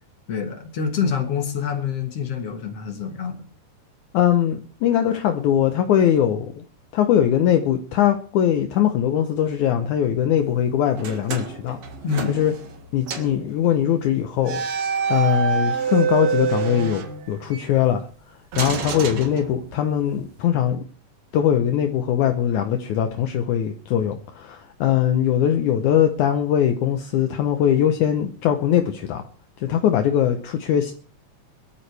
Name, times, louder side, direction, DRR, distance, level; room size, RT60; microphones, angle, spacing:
voice 1, 0.3-3.5 12.0-12.4, left 7 dB, 55° left, 6 dB, 2.2 m, -26 dB
voice 2, 4.1-6.5 6.9-11.8 12.3-12.5 12.9-14.6 15.1-18.1 18.6-20.8 21.3-29.2 29.6-30.9, left 10 dB, 70° left, 6 dB, 2.2 m, -21 dB
sound 1, 11.0-12.8 13.1-13.4 14.4-17.6 18.5-19.9, right 6 dB, 55° right, 2.6 m, -27 dB
22.0 x 13.0 x 3.4 m, 0.42 s
omnidirectional pair, 3.8 m